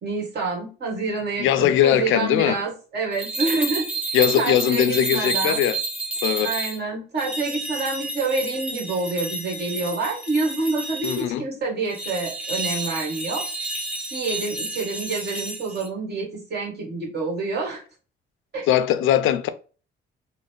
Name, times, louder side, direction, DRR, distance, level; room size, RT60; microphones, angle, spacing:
voice 1, 0.0-5.6 6.4-13.4 14.1-17.8 18.5-18.7, right 3 dB, 55° right, 1.5 m, -27 dB
voice 2, 1.4-2.6 4.1-5.8 6.2-6.5 11.0-11.4 18.7-19.5, left 11 dB, 90° left, 0.4 m, -20 dB
sound 1, 3.1-6.8 7.2-11.2 11.9-15.9, right 2 dB, 5° right, 1.0 m, -30 dB
3.9 x 2.1 x 3.3 m
cardioid pair, 90°, 20 cm